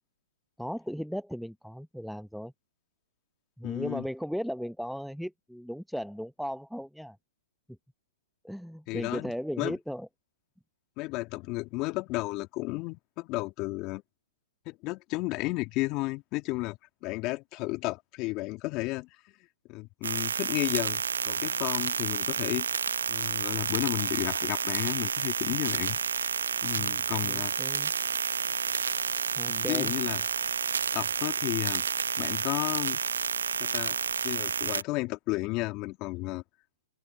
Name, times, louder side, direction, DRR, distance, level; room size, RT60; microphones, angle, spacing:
voice 1, 0.6-2.5 3.6-7.2 8.4-10.1 27.2-27.9 29.4-29.9, equal, ahead, 0.8 m, -36 dB
voice 2, 3.6-4.1 8.9-9.3 9.6-9.8 11.0-14.0 14.7-19.1 19.7-22.7 23.1-26.3 26.6-27.9 29.5-30.2 30.9-31.8 32.2-33.0 33.6-34.0 34.2-36.4, left 22 dB, 35° left, 2.0 m, -33 dB
sound 1, 20.0-34.8, right 6 dB, 80° right, 0.8 m, -30 dB
open air
hypercardioid pair, 125°, 0 cm